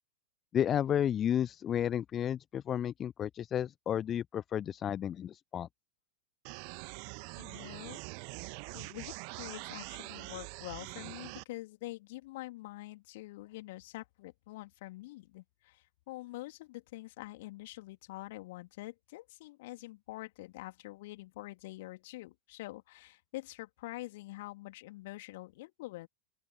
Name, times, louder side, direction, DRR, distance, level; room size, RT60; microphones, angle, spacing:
voice 1, 0.5-5.7, left 9 dB, 25° left, 0.3 m, -32 dB
sound 1, 6.4-11.4, right 40 dB or more, 45° right, 1.3 m, -44 dB
voice 2, 7.3-8.0 8.7-26.1, left 19 dB, 50° left, 3.0 m, -46 dB
open air
figure-of-eight pair, 90°, 0 cm